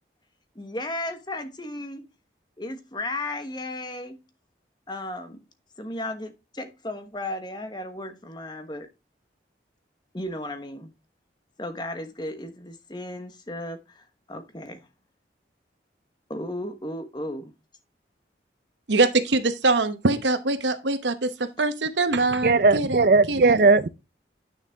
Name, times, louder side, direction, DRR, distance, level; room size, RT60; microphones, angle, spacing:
voice 1, 0.5-2.0 2.6-4.2 4.9-5.4 5.8-8.9 10.1-10.9 11.6-14.9 16.3-17.5, left 1 dB, 25° left, 1.2 m, -35 dB
voice 2, 18.9-21.3 21.6-23.6, right 3 dB, 80° right, 1.0 m, -23 dB
voice 3, 22.4-23.9, right 3 dB, 50° right, 0.5 m, -18 dB
9.5 x 6.5 x 3.5 m
head